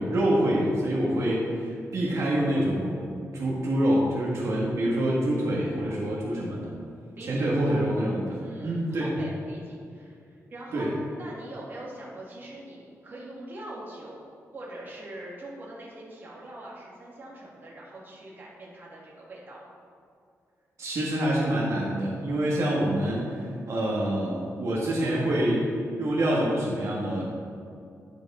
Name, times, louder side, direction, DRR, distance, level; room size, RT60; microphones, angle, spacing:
voice 1, 0.0-3.1 3.3-6.7 7.3-9.1 10.7-10.9 20.8-25.7 26.0-27.3, right 1 dB, 65° right, -5 dB, 1.5 m, -26 dB
voice 2, 8.4-14.3 14.5-19.7, right 1 dB, 35° right, -5 dB, 1.8 m, -43 dB
10.5 x 4.8 x 4.2 m, 2.4 s
wide cardioid pair, 155°, 6 cm